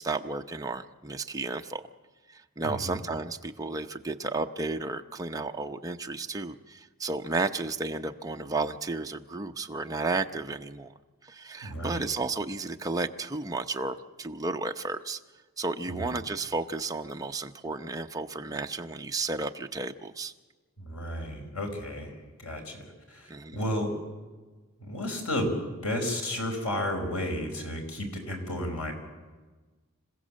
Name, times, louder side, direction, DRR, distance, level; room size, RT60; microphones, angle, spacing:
voice 1, 0.0-1.8 2.3-10.9 11.2-15.2 15.6-20.3 23.3-23.6, right 3 dB, 15° right, 4 dB, 0.8 m, -33 dB
voice 2, 2.6-3.0 11.6-12.1 15.9-16.1 20.8-24.0 24.8-25.5 25.8-28.9, left 1 dB, 80° left, 3 dB, 4.9 m, -33 dB
26.5 x 15.5 x 7.6 m, 1.3 s
head